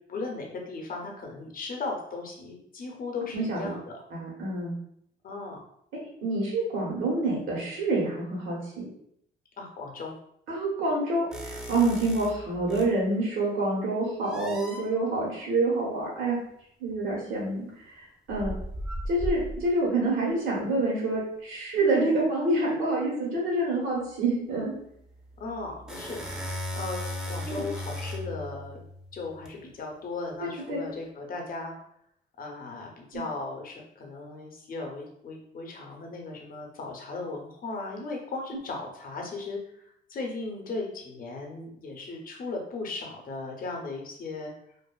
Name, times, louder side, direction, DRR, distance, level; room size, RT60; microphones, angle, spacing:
voice 1, 0.0-4.0 5.2-5.7 9.6-10.1 25.4-26.2 26.7-28.8 29.1-31.8 32.4-44.5, left 3 dB, 45° left, 1 dB, 0.7 m, -37 dB
voice 2, 3.3-3.7 4.1-4.7 6.2-8.8 10.5-16.4 16.8-17.6 18.3-18.6 19.1-24.7 27.5-27.6 30.7-30.8, right 2 dB, 85° right, -4 dB, 1.2 m, -27 dB
sound 1, 11.3-13.0 14.2-14.9 16.9-17.0 18.3-19.8 25.4-29.5, equal, 5° right, 0.5 m, -36 dB
2.5 x 2.4 x 2.3 m, 0.71 s
cardioid pair, 90°, 20 cm